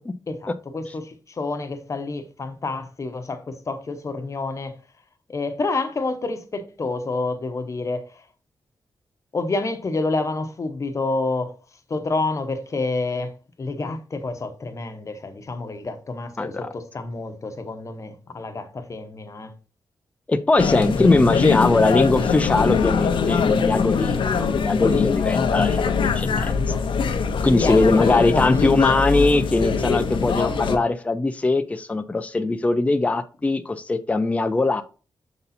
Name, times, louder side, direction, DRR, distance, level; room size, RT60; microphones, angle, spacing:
voice 1, 0.3-4.7 5.3-8.2 9.3-11.5 11.9-13.3 13.6-19.5 20.7-21.1 25.7-25.9 26.3-26.8 27.4-28.8 30.2-30.8, left 3 dB, 35° left, 0.9 m, -29 dB
voice 2, 20.3-25.9 26.2-26.5 27.4-34.8, left 3 dB, 15° left, 0.4 m, -20 dB
sound 1, 20.6-30.8, left 6 dB, 75° left, 0.7 m, -22 dB
6.7 x 4.1 x 4.2 m
wide cardioid pair, 140°, 9 cm